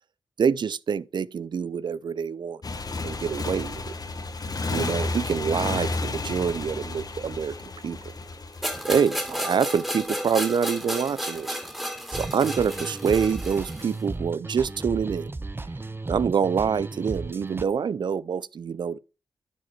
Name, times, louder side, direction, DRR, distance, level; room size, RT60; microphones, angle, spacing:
voice 1, 0.4-2.6 3.0-3.8 4.7-8.0 8.8-11.6 12.1-15.3 16.1-19.0, right 6 dB, 65° right, 0.4 m, -26 dB
Motorcycle, 2.6-9.0, left 3 dB, 50° left, 1.2 m, -32 dB
sound 1, 8.6-14.0, equal, 5° right, 2.7 m, -32 dB
sound 2, 12.1-17.6, right 2 dB, 25° right, 0.8 m, -35 dB
11.0 x 4.9 x 4.5 m
cardioid pair, 50°, 8 cm